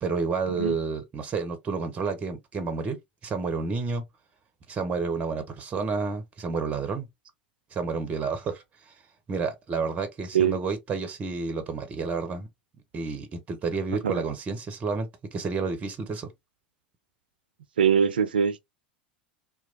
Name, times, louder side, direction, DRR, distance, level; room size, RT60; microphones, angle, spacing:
voice 1, 0.0-4.0 4.7-7.1 7.7-8.9 9.3-12.5 12.9-16.3, right 4 dB, 25° right, 0.6 m, -30 dB
voice 2, 17.8-18.7, right 7 dB, 75° right, 0.4 m, -23 dB
2.8 x 2.2 x 2.6 m
figure-of-eight pair, 80°, 5 cm